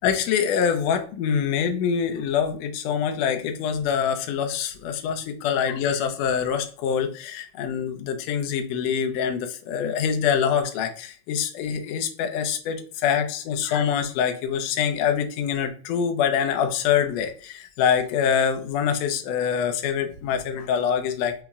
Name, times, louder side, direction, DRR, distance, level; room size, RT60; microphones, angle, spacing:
voice 1, 0.0-21.3, left 7 dB, 85° left, 5 dB, 1.4 m, -25 dB
5.4 x 2.9 x 2.3 m, 0.42 s
omnidirectional pair, 3.7 m